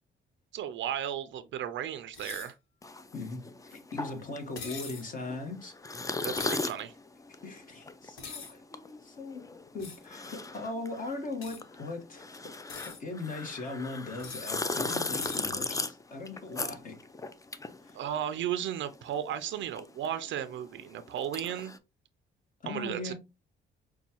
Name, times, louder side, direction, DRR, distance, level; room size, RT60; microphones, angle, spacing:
voice 1, 0.5-2.6 6.2-6.9 17.9-21.7 22.7-23.1, right 10 dB, 70° right, 0.5 m, -35 dB
sound 1, 2.1-2.5 4.6-5.1 6.3-6.7 8.2-8.5 9.8-10.1 11.4-11.6 12.5-13.0 14.2-14.5 15.2-15.5, left 5 dB, 80° left, 1.2 m, -43 dB
sound 2, 2.8-18.6 18.9-21.8, left 3 dB, 15° left, 0.4 m, -38 dB
voice 2, 3.1-5.7 7.4-12.4 12.7-17.0 17.8-18.0 22.6-23.1, left 3 dB, 45° left, 1.3 m, -39 dB
5.4 x 2.3 x 2.8 m
cardioid pair, 90°, 20 cm